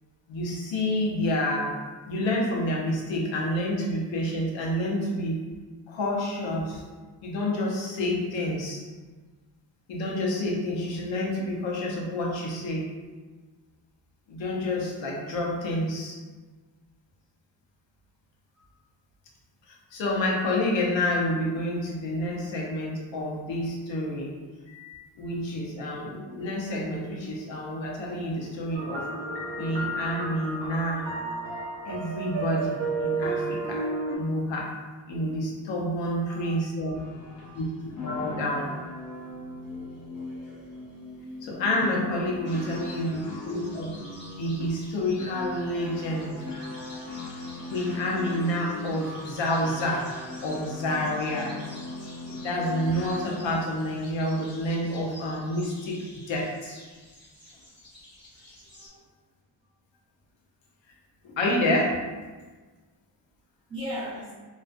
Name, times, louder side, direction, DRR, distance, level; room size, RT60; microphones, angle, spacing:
voice 1, 0.3-5.4 5.9-6.8 7.2-8.8 9.9-13.0 14.3-16.2 19.7-24.4 24.7-29.1 29.6-31.1 31.9-33.9 34.2-34.8 35.1-37.0 37.5-38.7 41.4-44.0 44.4-46.4 47.7-50.1 50.4-51.6 52.2-56.0 56.3-56.8 61.2-62.1, left 1 dB, 80° left, -2 dB, 0.7 m, -29 dB
sound 1, 28.7-34.2, right 3 dB, 25° right, 0.7 m, -32 dB
voice 2, 36.1-37.6 42.4-43.6 58.6-59.0 63.7-64.3, equal, 10° right, -10 dB, 1.2 m, -41 dB
sound 2, 36.9-53.7, left 2 dB, 45° left, 0.7 m, -39 dB
sound 3, 42.4-58.9, left 1 dB, 25° left, 1.3 m, -50 dB
2.3 x 2.3 x 2.4 m, 1.3 s
cardioid pair, 115°, 45 cm